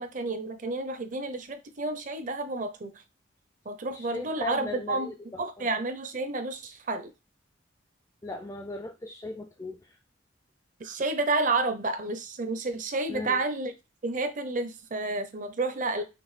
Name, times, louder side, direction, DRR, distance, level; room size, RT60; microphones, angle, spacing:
voice 1, 0.0-2.9 3.7-5.1 5.4-7.1 10.8-13.7 14.0-16.0, right 3 dB, 40° right, 0.6 m, -30 dB
voice 2, 3.9-5.7 8.2-10.0 13.1-13.4, left 2 dB, 15° left, 0.3 m, -38 dB
5.9 x 2.6 x 3.2 m
head